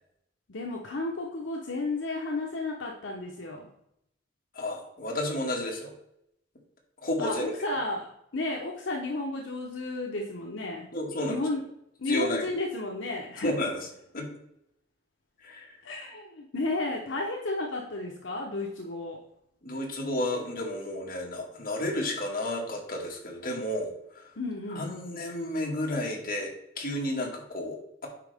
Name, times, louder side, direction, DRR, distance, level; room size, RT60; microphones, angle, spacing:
voice 1, 0.5-3.7 7.2-10.9 11.3-11.6 12.0-13.5 15.8-19.2 24.4-24.9, left 2 dB, 75° left, 0 dB, 0.9 m, -33 dB
voice 2, 4.5-5.9 7.0-7.5 10.9-11.4 12.1-12.5 13.4-13.8 14.1-14.3 15.4-15.8 19.6-24.3 24.8-28.1, left 1 dB, 50° left, -1 dB, 2.0 m, -32 dB
8.7 x 5.3 x 3.5 m, 0.77 s
head